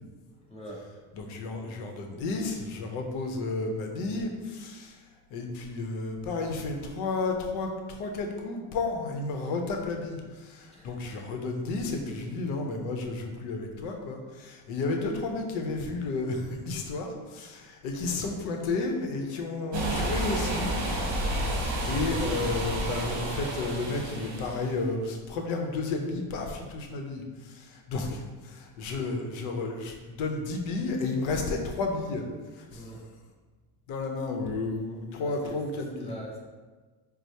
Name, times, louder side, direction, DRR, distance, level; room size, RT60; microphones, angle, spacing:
voice 1, 0.3-0.9 10.7-10.9 32.7-33.0 35.2-35.6 36.0-36.4, equal, 15° left, -3 dB, 0.8 m, -43 dB
voice 2, 1.1-5.0 5.3-21.5 21.8-32.3 32.6-32.9 33.9-36.1, left 3 dB, 80° left, 3 dB, 0.7 m, -32 dB
sound 1, 19.7-24.8, right 1 dB, 40° right, 0.9 m, -30 dB
4.4 x 2.0 x 2.7 m, 1.3 s
cardioid pair, 110°, 46 cm